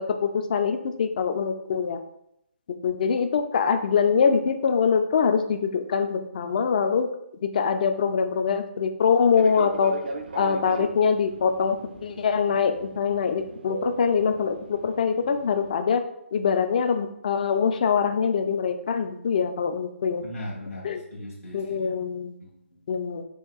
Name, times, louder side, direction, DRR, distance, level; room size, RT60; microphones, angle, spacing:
voice 1, 0.0-2.0 2.8-7.1 7.4-10.0 10.3-16.0 16.3-20.2 20.8-21.0 21.5-22.4 22.9-23.2, left 6 dB, 35° left, 8 dB, 0.3 m, -24 dB
Fixed-wing aircraft airplane, 9.3-15.7, right 4 dB, 45° right, 0.4 m, -38 dB
voice 2, 20.2-22.0 22.4-22.8, left 1 dB, 85° left, -5 dB, 1.1 m, -39 dB
4.4 x 2.3 x 3.6 m, 0.77 s
figure-of-eight pair, 155°, 7 cm